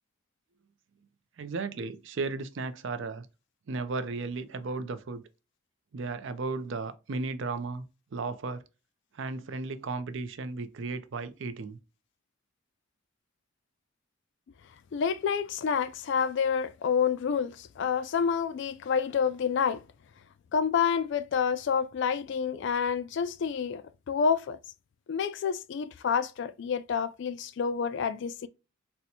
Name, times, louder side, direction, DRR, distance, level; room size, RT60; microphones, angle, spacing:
voice 1, 1.4-3.3 3.7-5.2 5.9-8.6 9.1-11.8, right 3 dB, 60° right, 0.4 m, -35 dB
voice 2, 14.9-19.8 20.5-23.8 24.1-24.6 25.1-28.5, left 6 dB, 55° left, 0.3 m, -28 dB
4.2 x 2.1 x 2.7 m
head